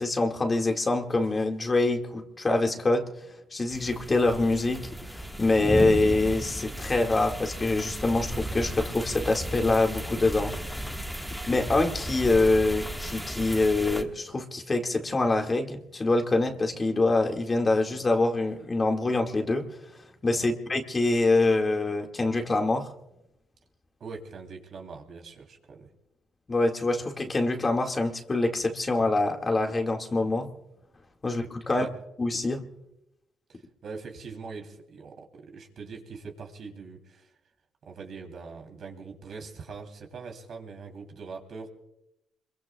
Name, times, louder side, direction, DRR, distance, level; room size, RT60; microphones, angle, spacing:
voice 1, 0.0-3.1 3.5-10.5 11.5-19.6 20.2-22.9 26.5-30.5 31.2-31.9 32.2-32.6, left 2 dB, 30° left, 3 dB, 2.0 m, -25 dB
sound 1, 3.7-14.0, equal, ahead, 1.6 m, -35 dB
voice 2, 24.0-25.9 31.8-31.9 33.5-37.3 37.8-41.7, right 4 dB, 60° right, 3 dB, 3.2 m, -42 dB
26.0 x 22.5 x 2.3 m, 0.86 s
cardioid pair, 90°, 0 cm